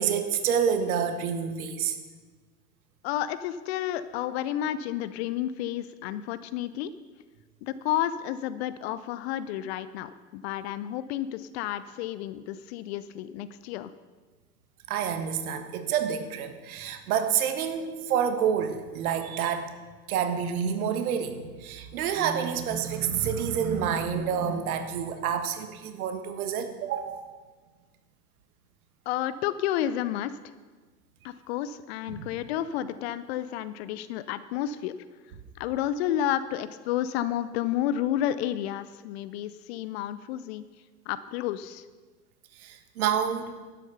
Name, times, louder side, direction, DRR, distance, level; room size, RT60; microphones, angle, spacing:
voice 1, 0.0-2.0 14.9-19.7 20.1-27.3 32.1-32.3 42.6-43.5, right 8 dB, 60° right, 8 dB, 1.5 m, -28 dB
voice 2, 3.0-6.9 7.6-13.9 29.1-30.3 31.2-34.9 35.6-40.6 41.1-41.8, left 11 dB, 40° left, 14 dB, 0.6 m, -31 dB
11.5 x 9.9 x 5.6 m, 1.4 s
figure-of-eight pair, 90°, 50 cm